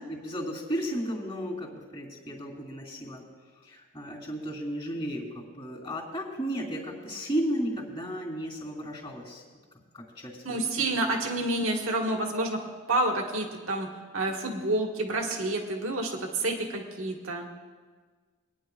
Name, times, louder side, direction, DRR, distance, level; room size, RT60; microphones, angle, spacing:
voice 1, 0.1-3.2 3.6-9.4 9.9-10.9, equal, 25° left, -7 dB, 2.9 m, -34 dB
voice 2, 10.4-12.6 12.9-17.5, right 2 dB, 75° right, 1 dB, 1.6 m, -29 dB
25.5 x 10.0 x 2.4 m, 1.5 s
head